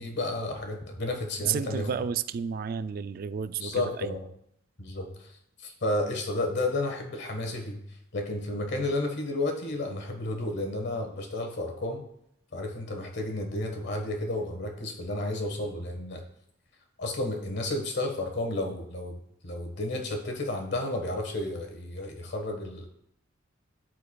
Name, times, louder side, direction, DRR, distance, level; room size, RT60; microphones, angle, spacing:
voice 1, 0.0-1.9 3.6-4.3 4.8-5.3 5.6-7.8 8.1-12.0 12.5-16.2 17.0-19.1 19.4-22.9, left 2 dB, 60° left, 3 dB, 1.3 m, -32 dB
voice 2, 1.4-4.2, right 7 dB, 50° right, 13 dB, 0.3 m, -31 dB
13.0 x 4.6 x 2.3 m, 0.75 s
head